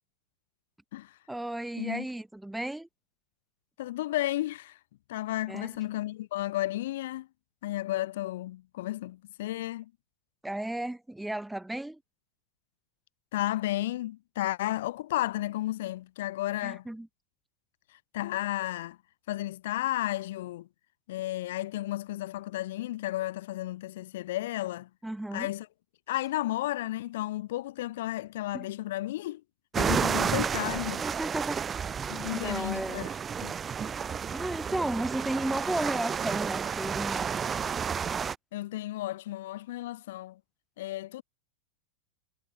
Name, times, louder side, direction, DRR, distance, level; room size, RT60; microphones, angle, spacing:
voice 1, 1.3-2.9 5.5-5.7 10.4-12.0 16.6-17.1 25.0-25.5 28.5-28.7 31.0-33.1 34.3-37.6, right 1 dB, 5° right, 2.6 m, -34 dB
voice 2, 3.8-4.8 5.1-7.3 7.6-9.9 13.3-16.9 17.9-19.0 19.3-20.7 21.1-24.9 25.3-25.7 26.1-29.4 29.8-31.0 32.1-33.1 33.4-33.6 38.5-40.4 40.8-41.2, left 15 dB, 55° left, 0.8 m, -33 dB
sound 1, 29.7-38.4, right 7 dB, 20° right, 1.8 m, -31 dB
figure-of-eight pair, 90°, 0 cm